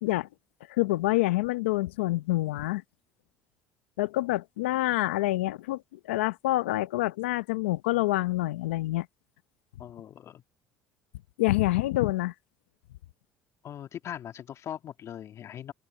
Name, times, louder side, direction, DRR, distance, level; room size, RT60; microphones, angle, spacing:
voice 1, 0.7-2.8 4.0-9.1 11.4-12.3, left 18 dB, 90° left, 1.0 m, -27 dB
voice 2, 9.8-10.4 13.6-15.7, left 10 dB, 50° left, 2.9 m, -40 dB
supercardioid pair, 75°, 6 cm